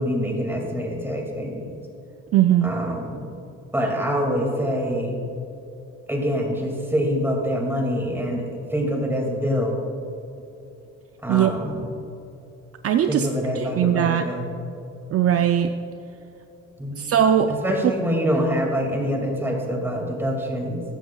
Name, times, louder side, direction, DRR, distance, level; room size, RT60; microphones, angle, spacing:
voice 1, 0.0-1.7 2.6-3.3 3.7-5.2 6.1-8.4 8.7-9.8 11.2-12.1 13.1-14.5 16.8-17.1 17.6-20.8, equal, 10° right, 0 dB, 2.2 m, -25 dB
voice 2, 2.3-2.7 11.3-11.5 12.8-13.3 13.6-14.3 15.1-15.7 17.0-17.5, right 10 dB, 50° right, 7 dB, 0.5 m, -19 dB
14.5 x 10.5 x 2.3 m, 2.8 s
cardioid pair, 90°, 30 cm